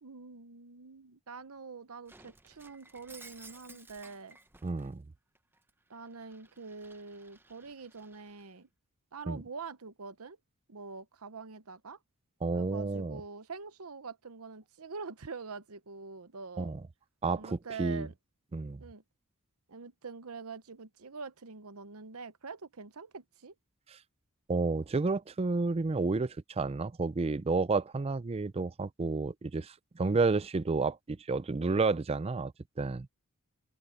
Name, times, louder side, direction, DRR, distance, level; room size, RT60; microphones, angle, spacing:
voice 1, 0.0-4.4 5.9-8.7 9.1-10.4 10.7-12.0 12.5-16.7 17.3-18.1 18.8-19.0 19.7-23.5, right 4 dB, 80° right, 0.9 m, -45 dB
Shatter, 2.1-4.9 5.4-8.5, right 3 dB, 10° right, 0.8 m, -56 dB
voice 2, 4.6-5.0 9.3-9.4 12.4-13.2 16.6-16.8 17.2-18.1 18.5-18.8 24.5-32.5 32.8-33.1, right 3 dB, 30° right, 0.4 m, -31 dB
open air
head